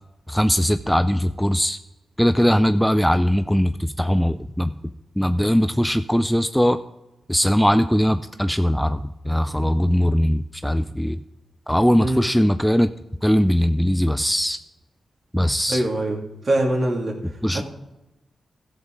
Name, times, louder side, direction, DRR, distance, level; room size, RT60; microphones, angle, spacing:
voice 1, 0.3-1.8 2.2-4.7 5.2-6.8 7.3-11.2 11.7-12.9 13.2-14.6 15.3-15.8 17.4-17.6, equal, 5° left, 10 dB, 0.4 m, -20 dB
voice 2, 15.7-16.2 16.4-17.2 17.5-17.6, right 1 dB, 50° right, 1 dB, 2.4 m, -22 dB
14.0 x 7.5 x 3.8 m, 0.99 s
cardioid pair, 65°, 0 cm